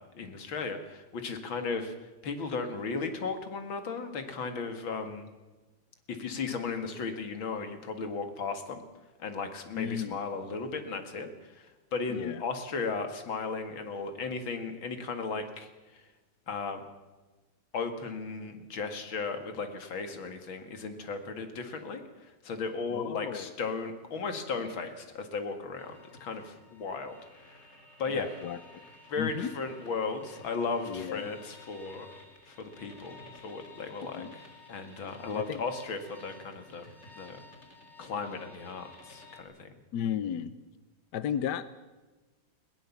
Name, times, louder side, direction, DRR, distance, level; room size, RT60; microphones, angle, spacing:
voice 1, 0.0-2.0 2.2-5.3 6.1-8.8 9.2-16.0 16.5-16.8 17.7-27.6 28.0-28.3 29.1-32.1 32.5-36.9 37.2-37.4 38.0-39.7, left 4 dB, 80° left, 8 dB, 2.7 m, -36 dB
voice 2, 9.7-10.2 12.1-12.4 22.9-23.5 28.1-28.6 29.2-29.5 30.9-31.3 34.1-34.3 35.4-35.6 39.9-40.5 41.1-41.7, left 9 dB, 65° left, 14 dB, 1.3 m, -34 dB
sound 1, 25.7-39.4, left 2 dB, 35° left, 3.2 m, -53 dB
21.0 x 18.5 x 7.2 m, 1.2 s
omnidirectional pair, 2.1 m